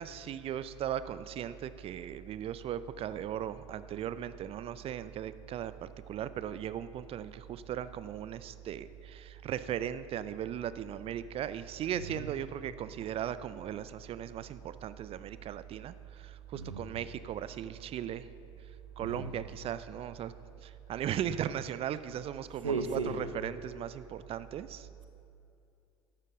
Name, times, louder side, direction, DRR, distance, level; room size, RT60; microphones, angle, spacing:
voice 1, 0.0-18.3 19.0-20.3 20.6-24.9, right 10 dB, 35° right, 14 dB, 0.5 m, -38 dB
voice 2, 11.9-12.3 16.5-16.9 19.0-19.4 22.6-23.3, right 3 dB, 90° right, 5 dB, 1.0 m, -35 dB
13.0 x 12.0 x 3.7 m, 2.6 s
figure-of-eight pair, 70°, 16 cm